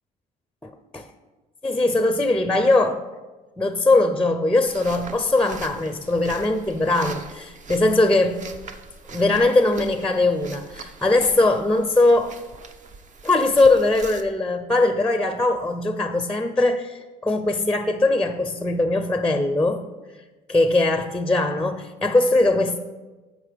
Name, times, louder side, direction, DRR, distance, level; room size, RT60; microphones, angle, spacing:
voice 1, 0.6-1.0 1.6-3.0 3.6-8.5 9.1-12.4 13.2-19.8 20.5-22.8, left 2 dB, 5° left, 8 dB, 0.5 m, -20 dB
sound 1, 4.6-14.2, right 4 dB, 45° right, 0.7 m, -42 dB
15.0 x 5.2 x 3.4 m, 1.2 s
cardioid pair, 110°, 17 cm